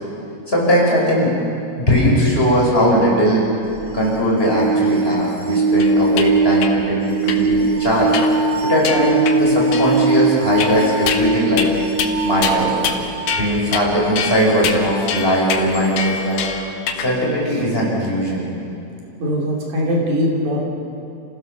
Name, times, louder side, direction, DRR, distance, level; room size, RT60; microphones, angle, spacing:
voice 1, 0.5-1.4 1.9-3.5 3.9-11.7 12.2-12.7 13.4-16.4 17.0-18.5, equal, 15° left, -4 dB, 5.5 m, -19 dB
sound 1, 3.7-13.4 15.7-15.8, right 3 dB, 5° right, 3.2 m, -20 dB
sound 2, 5.8-6.3 6.6-6.7 7.3-7.4 8.1-8.5 8.8-9.4 9.7-10.1 10.6-11.3 11.6-11.7 12.0-12.1 12.4-13.0 13.3-13.9 14.2-17.1, left 7 dB, 85° left, 2.7 m, -25 dB
voice 2, 19.2-20.6, equal, 80° right, -2 dB, 4.5 m, -20 dB
29.5 x 16.0 x 6.8 m, 2.6 s
omnidirectional pair, 3.5 m